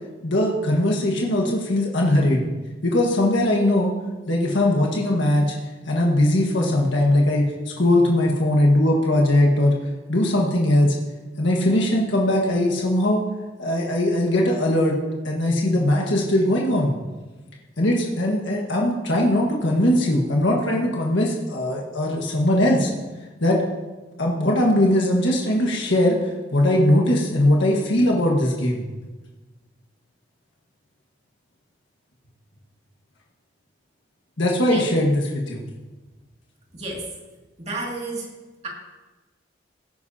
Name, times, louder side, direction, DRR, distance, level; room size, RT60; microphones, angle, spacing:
voice 1, 0.2-2.4 2.8-3.9 4.3-5.6 5.8-9.7 10.1-11.0 11.4-13.2 13.6-15.0 15.2-16.9 17.8-22.9 23.4-23.6 24.2-28.8 34.4-35.6, left 1 dB, 75° left, -1 dB, 1.6 m, -20 dB
voice 2, 36.7-37.1 37.6-38.3 38.6-38.7, right 2 dB, 35° right, -2 dB, 2.5 m, -31 dB
18.0 x 10.0 x 2.9 m, 1.2 s
head